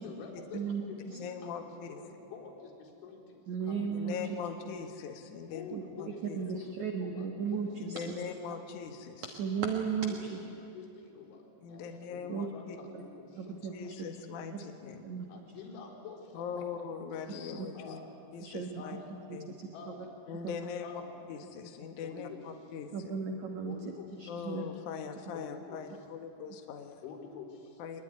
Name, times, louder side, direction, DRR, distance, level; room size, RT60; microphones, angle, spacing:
voice 1, 0.0-1.6 1.9-4.6 5.5-8.1 9.9-13.7 15.3-16.8 17.7-18.1 18.8-19.1 19.7-20.1 20.8-21.1 22.0-22.4 23.7-24.3 25.3-25.8 27.0-27.8, left 5 dB, 85° left, -3 dB, 6.8 m, -48 dB
voice 2, 1.2-2.0 3.6-5.7 6.0-6.4 7.8-9.4 11.6-12.8 13.5-15.0 16.3-18.0 18.3-19.0 19.3-19.6 20.3-21.0 21.3-23.1 24.3-27.0 27.8-28.0, left 6 dB, 60° left, 5 dB, 2.3 m, -41 dB
voice 3, 3.5-4.2 5.7-5.8 6.3-7.7 8.1-8.2 9.4-10.4 12.3-12.5 13.0-13.1 13.4-13.9 14.5-14.6 15.0-15.3 18.4-18.8 22.9-23.8 24.2-24.6, right 6 dB, 65° right, 3 dB, 1.9 m, -35 dB
24.5 x 21.0 x 9.8 m, 2.6 s
omnidirectional pair, 5.3 m